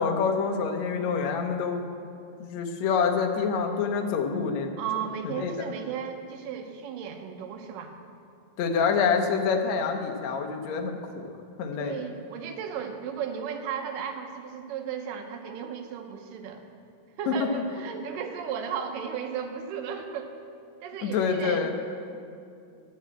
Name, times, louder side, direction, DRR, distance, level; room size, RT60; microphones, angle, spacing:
voice 1, 0.0-1.8 2.4-4.7 5.2-5.5 8.6-11.3 11.6-12.0 17.3-17.6 21.0-21.7, left 5 dB, 70° left, 4 dB, 1.8 m, -26 dB
voice 2, 4.7-7.9 11.8-16.6 17.2-20.3 20.8-21.7, right 7 dB, 75° right, 4 dB, 2.4 m, -35 dB
11.5 x 7.1 x 7.6 m, 2.5 s
omnidirectional pair, 4.1 m